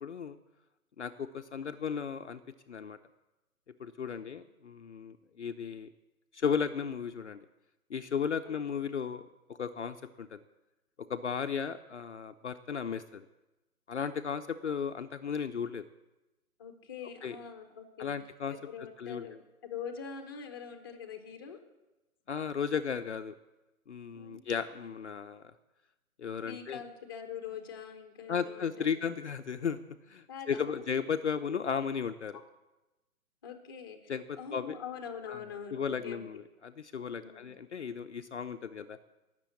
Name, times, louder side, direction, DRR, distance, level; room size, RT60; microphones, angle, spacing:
voice 1, 0.0-0.4 1.0-2.4 2.7-3.0 3.8-5.9 6.3-7.4 7.9-10.4 11.1-13.2 13.9-15.8 17.2-17.4 18.0-18.6 19.0-19.3 22.3-23.3 23.9-25.4 26.2-26.8 28.3-29.8 30.1-32.4 34.1-34.8 35.3-35.4 35.7-39.0, left 7 dB, 50° left, 8 dB, 0.7 m, -35 dB
voice 2, 4.1-4.4 8.4-8.5 16.6-18.1 18.5-19.3 19.6-21.6 24.1-24.4 26.5-29.1 30.3-30.8 33.4-36.2 37.2-37.5, left 7 dB, 15° left, 5 dB, 0.9 m, -44 dB
18.0 x 6.9 x 8.3 m, 1.0 s
hypercardioid pair, 165°, 45 cm